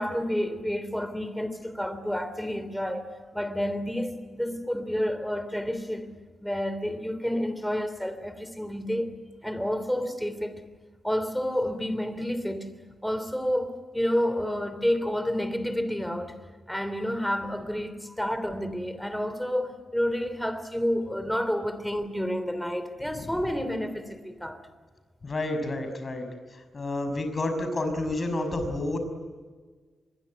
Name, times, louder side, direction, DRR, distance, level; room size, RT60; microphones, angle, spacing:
voice 1, 0.0-6.1 6.4-9.1 9.4-10.6 11.0-12.7 13.0-16.4 16.7-24.6, equal, 5° left, 3.1 m, -29 dB
voice 2, 25.2-26.3 26.5-29.0, left 2 dB, 35° left, 5.9 m, -30 dB
24.5 x 22.0 x 9.6 m
cardioid pair, 100°, 0 cm